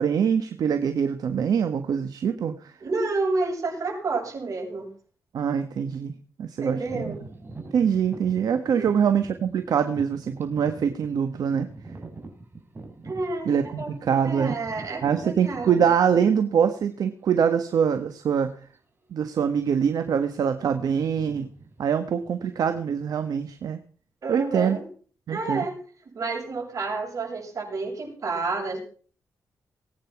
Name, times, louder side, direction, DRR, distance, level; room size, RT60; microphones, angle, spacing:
voice 1, 0.0-2.7 5.3-7.1 7.7-11.7 13.5-14.5 15.0-18.5 19.1-21.5 21.8-23.8 24.3-24.8 25.3-25.6, right 7 dB, 75° right, 8 dB, 1.4 m, -24 dB
voice 2, 2.8-4.9 6.6-7.2 8.8-9.0 13.0-13.9 14.2-15.8 24.2-24.8 25.3-25.7 26.1-28.8, right 3 dB, 55° right, 0 dB, 7.5 m, -30 dB
sound 1, 6.8-16.6 17.3-17.4 18.0-18.3 18.5-18.8 19.4-20.0 20.2-23.6, right 3 dB, 35° right, 4.6 m, -45 dB
19.5 x 9.3 x 6.0 m, 0.43 s
cardioid pair, 85°, 7 cm